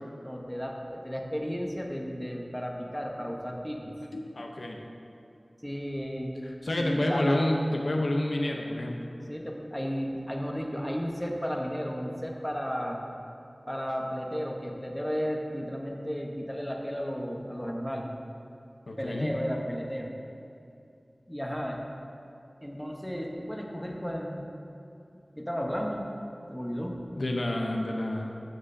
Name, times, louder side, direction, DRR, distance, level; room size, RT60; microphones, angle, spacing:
voice 1, 0.2-3.9 5.6-6.5 6.8-7.5 9.3-13.0 13.7-18.1 19.0-20.1 21.3-21.8 22.6-24.5 25.4-26.1 26.5-27.0, equal, 5° left, 0 dB, 1.0 m, -33 dB
voice 2, 4.1-4.8 6.4-9.0 18.9-19.3 27.2-28.3, left 1 dB, 80° left, 1 dB, 0.7 m, -29 dB
12.5 x 6.2 x 2.7 m, 2.7 s
wide cardioid pair, 50°, 0 cm